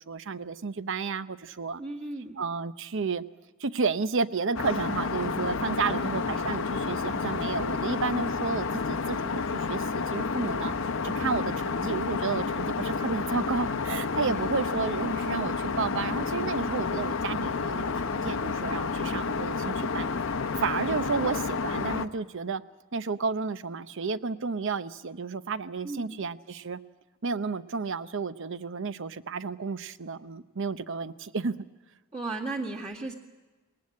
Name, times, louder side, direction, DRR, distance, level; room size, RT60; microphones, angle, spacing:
voice 1, 0.0-1.8 2.4-3.2 3.6-10.7 11.0-20.1 20.6-22.6 22.9-26.8 27.2-31.5, right 4 dB, 60° right, 14 dB, 0.8 m, -32 dB
voice 2, 1.8-2.4 5.7-6.6 14.2-14.4 25.8-26.2 32.1-33.1, right 3 dB, 30° right, -3 dB, 2.1 m, -36 dB
Aircraft, 4.5-22.1, left 4 dB, 65° left, 0.8 m, -30 dB
20.0 x 19.0 x 8.7 m, 1.2 s
head